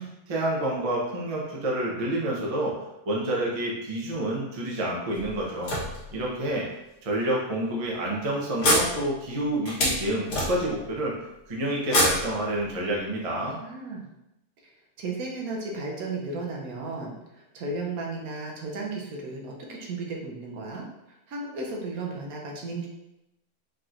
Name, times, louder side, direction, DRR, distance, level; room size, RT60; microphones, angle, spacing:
voice 1, 0.0-2.8 3.1-5.7 6.1-6.7 7.0-11.1 11.5-13.6, right 1 dB, 35° right, -3 dB, 0.6 m, -28 dB
sound 1, 5.1-6.5 7.2-7.3 7.7-7.8 8.6-10.9 11.8-13.0, left 1 dB, 75° left, 1.7 m, -27 dB
voice 2, 13.6-14.1 15.0-20.8 21.3-22.9, right 3 dB, 75° right, -1 dB, 1.1 m, -34 dB
4.9 x 2.9 x 2.5 m, 0.91 s
omnidirectional pair, 1.6 m